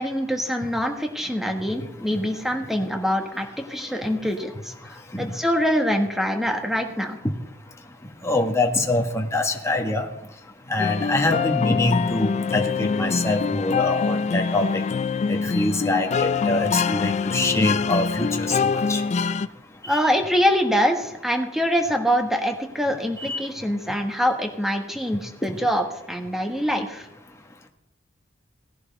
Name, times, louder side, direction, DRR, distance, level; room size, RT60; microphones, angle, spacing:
voice 1, 0.0-7.2 19.9-27.1, equal, ahead, 3 dB, 1.4 m, -24 dB
voice 2, 8.2-10.1 10.7-14.8 15.3-18.6 18.9-19.0 19.8-20.0 23.2-23.4, left 2 dB, 15° left, 2 dB, 1.3 m, -24 dB
sound 1, 10.8-19.5, left 5 dB, 35° left, 0.3 m, -24 dB
18.0 x 11.0 x 3.4 m, 0.88 s
head